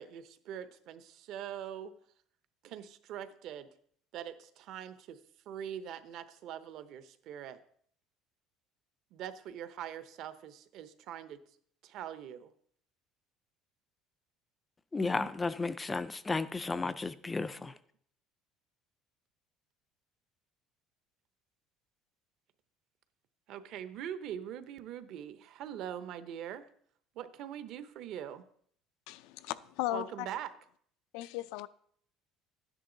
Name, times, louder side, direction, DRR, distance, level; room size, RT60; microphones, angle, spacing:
voice 1, 0.0-2.0 2.6-3.7 4.1-5.2 5.5-7.6 9.1-11.4 11.8-12.5 17.7-17.8 23.5-26.7 27.1-28.4 29.9-30.5, right 10 dB, 50° right, 0.8 m, -43 dB
voice 2, 14.9-17.7, left 3 dB, 10° left, 0.4 m, -33 dB
voice 3, 29.1-30.3 31.1-31.7, left 16 dB, 75° left, 0.5 m, -36 dB
12.5 x 10.0 x 3.9 m
cardioid pair, 170°, 0 cm